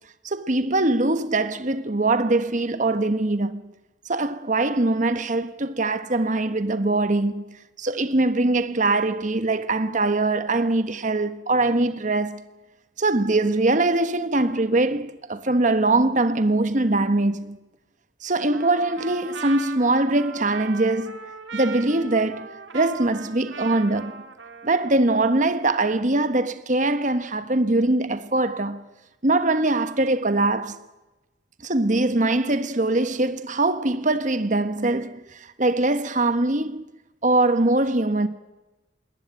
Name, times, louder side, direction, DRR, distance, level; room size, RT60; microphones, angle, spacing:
voice 1, 0.2-3.6 4.1-7.4 7.8-12.4 13.0-17.6 18.2-21.2 21.5-24.2 24.6-28.8 29.2-30.8 31.6-36.9 37.2-38.3, right 2 dB, 40° right, 1.2 m, -22 dB
Trumpet, 18.5-25.1, right 5 dB, 75° right, 2.3 m, -39 dB
21.0 x 20.0 x 8.9 m
head